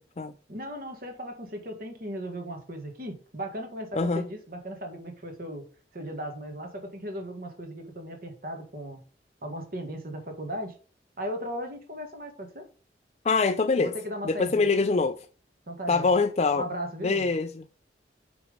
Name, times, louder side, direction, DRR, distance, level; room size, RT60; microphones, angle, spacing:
voice 1, 0.5-5.7 5.9-9.0 9.4-10.8 11.2-12.7 13.8-14.8 15.7-16.1 16.6-17.3, equal, 50° right, 1.7 m, -37 dB
voice 2, 3.9-4.3 13.2-13.9 14.2-15.2 15.9-16.6 17.0-17.6, left 4 dB, 35° left, 0.4 m, -24 dB
5.8 x 5.4 x 5.1 m
head